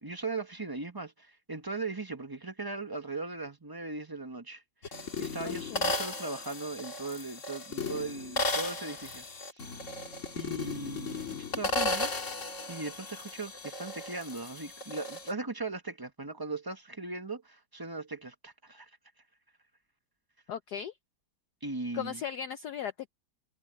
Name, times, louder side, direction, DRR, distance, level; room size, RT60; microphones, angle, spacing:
voice 1, 0.0-9.3 9.5-9.6 10.3-12.1 12.7-18.9 21.6-22.2, right 3 dB, 15° right, 0.7 m, -39 dB
sound 1, 4.8-15.3, left 2 dB, 35° left, 2.2 m, -35 dB
voice 2, 5.4-6.0 20.5-20.9 21.9-23.1, left 8 dB, 70° left, 1.0 m, -37 dB
omnidirectional pair, 2.3 m